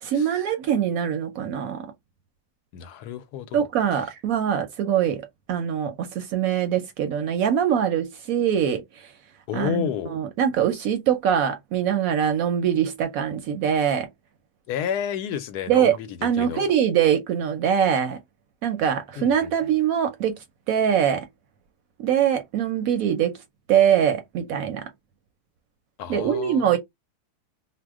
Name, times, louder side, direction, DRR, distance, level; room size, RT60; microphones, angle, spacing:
voice 1, 0.0-1.9 3.5-5.2 5.5-9.1 9.5-14.1 15.7-18.2 18.6-21.3 22.0-23.4 23.7-24.9 26.1-26.8, right 9 dB, 70° right, 0.9 m, -23 dB
voice 2, 2.7-3.6 9.5-10.2 14.7-16.1 16.4-16.7 19.2-19.5 26.0-26.8, left 8 dB, 75° left, 1.1 m, -30 dB
2.7 x 2.1 x 3.4 m
omnidirectional pair, 1.8 m